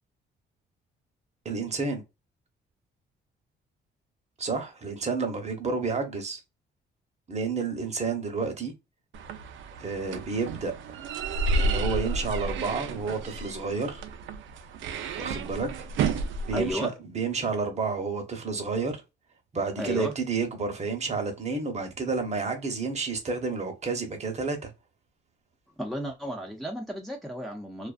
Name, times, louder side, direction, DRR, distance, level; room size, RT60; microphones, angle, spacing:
voice 1, 1.4-2.0 4.4-6.4 7.3-8.7 9.8-10.7 11.6-14.0 15.2-15.7 16.4-19.0 19.5-24.7, right 4 dB, 35° right, 0.9 m, -30 dB
sound 1, 9.1-16.7, right 3 dB, 75° right, 0.4 m, -31 dB
voice 2, 16.5-16.9 19.8-20.1 25.8-27.9, equal, ahead, 0.6 m, -33 dB
2.4 x 2.3 x 2.4 m
cardioid pair, 90°, 20 cm